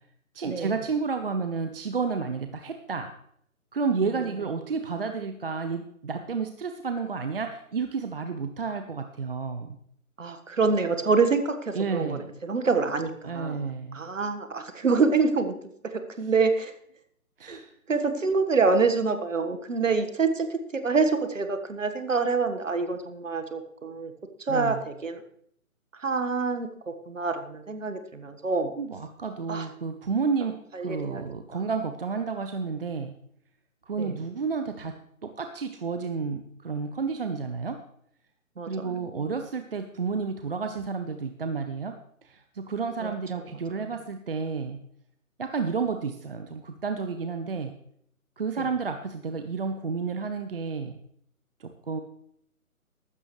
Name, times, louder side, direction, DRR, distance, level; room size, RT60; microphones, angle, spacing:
voice 1, 0.3-3.1 3.7-9.8 11.7-12.3 13.2-14.0 17.4-17.7 24.5-24.8 28.8-33.2 33.9-35.0 35.2-37.8 38.7-42.0 42.2-44.8 45.4-47.7 48.4-51.0 51.6-52.0, right 5 dB, 40° right, 7 dB, 0.8 m, -31 dB
voice 2, 10.2-15.5 15.8-16.7 17.4-17.6 17.9-24.1 24.4-25.2 25.9-28.8 29.5-29.7 30.7-31.2 31.5-31.7 34.0-34.2 38.6-39.3 43.0-43.9 48.6-48.7, right 4 dB, 60° right, 8 dB, 1.6 m, -27 dB
14.5 x 12.5 x 3.2 m, 0.68 s
figure-of-eight pair, 140°, 43 cm